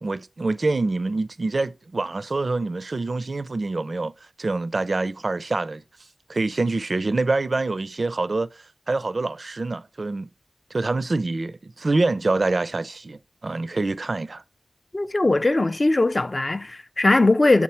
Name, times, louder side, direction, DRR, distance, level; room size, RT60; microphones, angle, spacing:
voice 1, 0.0-4.1 4.4-5.8 6.3-8.5 8.9-10.3 10.7-14.4, right 3 dB, 50° right, 0.4 m, -25 dB
voice 2, 14.9-17.6, left 2 dB, 30° left, 0.4 m, -20 dB
8.6 x 3.6 x 4.2 m
wide cardioid pair, 85°, 0 cm